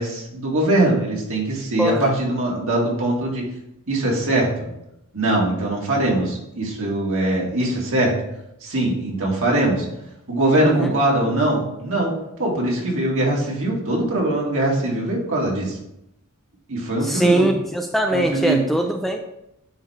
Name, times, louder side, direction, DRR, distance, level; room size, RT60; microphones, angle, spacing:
voice 1, 0.0-3.4 3.9-4.5 5.1-8.1 8.6-9.9 10.3-12.1 12.4-15.8 16.7-17.5 18.1-18.6, right 1 dB, 65° right, -3 dB, 2.3 m, -21 dB
voice 2, 1.8-2.2 10.6-10.9 17.0-19.2, right 1 dB, ahead, 3 dB, 0.4 m, -21 dB
9.5 x 3.5 x 4.4 m, 0.83 s
head